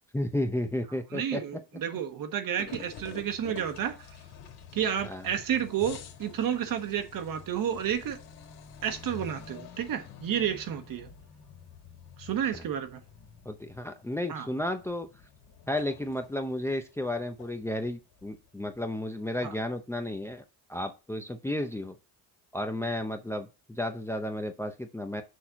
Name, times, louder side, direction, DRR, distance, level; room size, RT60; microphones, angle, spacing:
voice 1, 0.1-1.4 5.0-5.2 12.5-12.6 13.5-15.1 15.7-20.4 20.7-22.0 22.5-25.2, left 1 dB, 5° left, 0.6 m, -33 dB
voice 2, 1.1-4.1 4.7-8.2 8.8-11.1 12.2-13.0 14.3-14.5 19.4-19.5, right 9 dB, 55° right, 1.3 m, -31 dB
sound 1, 2.6-19.0, left 7 dB, 75° left, 1.9 m, -49 dB
6.5 x 4.3 x 5.7 m
cardioid pair, 135°, 39 cm